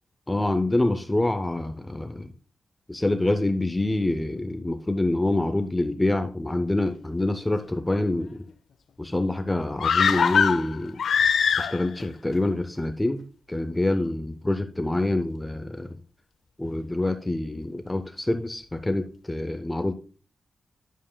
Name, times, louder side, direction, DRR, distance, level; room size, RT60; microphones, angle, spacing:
voice 1, 0.3-2.3 2.9-8.4 9.0-11.0 11.6-13.2 13.5-15.9 16.6-19.9, left 2 dB, 10° left, 7 dB, 0.5 m, -26 dB
sound 1, 9.8-12.0 12.3-12.4, left 6 dB, 80° left, 0.4 m, -22 dB
11.0 x 7.3 x 2.2 m, 0.37 s
wide cardioid pair, 155°, 0 cm